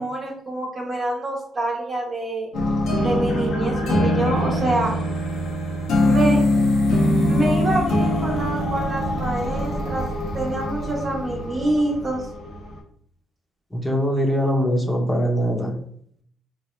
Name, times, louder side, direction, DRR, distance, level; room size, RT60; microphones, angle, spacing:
voice 1, 0.0-2.5 3.0-4.9 6.0-6.4 7.3-10.0 10.3-12.3, right 1 dB, 40° right, -4 dB, 0.9 m, -26 dB
sound 1, 2.5-12.7, left 1 dB, 85° left, 1.0 m, -23 dB
voice 2, 13.7-15.7, equal, 10° left, 1 dB, 0.8 m, -22 dB
4.6 x 2.1 x 3.1 m, 0.65 s
cardioid pair, 90°, 0 cm